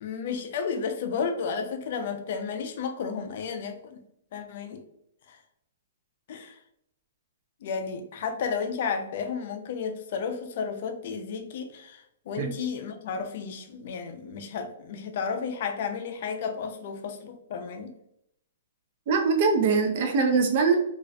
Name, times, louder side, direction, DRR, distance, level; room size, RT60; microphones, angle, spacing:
voice 1, 0.0-4.0 4.3-4.8 5.3-5.4 6.3-6.6 7.6-17.9, left 6 dB, 45° left, 0.4 m, -32 dB
voice 2, 19.1-20.7, right 4 dB, 40° right, 0.4 m, -22 dB
2.4 x 2.0 x 2.5 m
hypercardioid pair, 165°, 0 cm